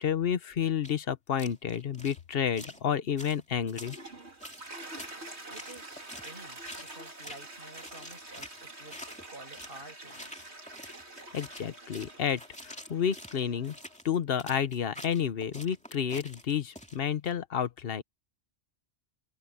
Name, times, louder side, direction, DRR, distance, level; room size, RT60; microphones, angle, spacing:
voice 1, 0.0-4.0 11.3-13.7 14.0-18.0, left 8 dB, 60° left, 1.1 m, -30 dB
sound 1, 0.8-0.9 1.4-2.2 2.5-2.8 3.2-4.1 4.4-5.2 5.5-6.4 6.6-7.0 7.2-7.5 7.7-9.8 10.1-17.3, equal, 5° left, 2.5 m, -47 dB
Toilet flush, 3.6-14.0, right 2 dB, 75° right, 4.0 m, -47 dB
voice 2, 5.5-9.0 9.3-10.5, right 2 dB, 55° right, 6.5 m, -51 dB
open air
omnidirectional pair, 1.1 m